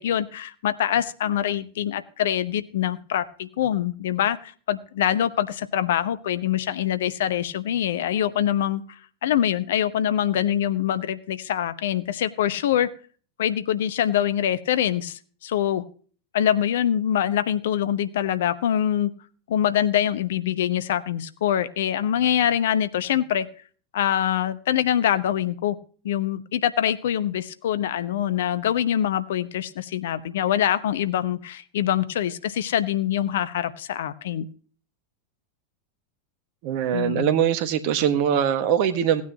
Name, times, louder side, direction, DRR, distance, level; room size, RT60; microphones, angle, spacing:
voice 1, 0.0-8.8 9.2-12.9 13.4-15.9 16.3-19.1 19.5-23.5 23.9-25.8 26.0-34.5 36.9-37.3, left 10 dB, 60° left, 13 dB, 0.8 m, -24 dB
voice 2, 36.6-39.2, right 9 dB, 45° right, 10 dB, 1.4 m, -22 dB
17.5 x 9.4 x 2.8 m, 0.41 s
figure-of-eight pair, 90°, 0 cm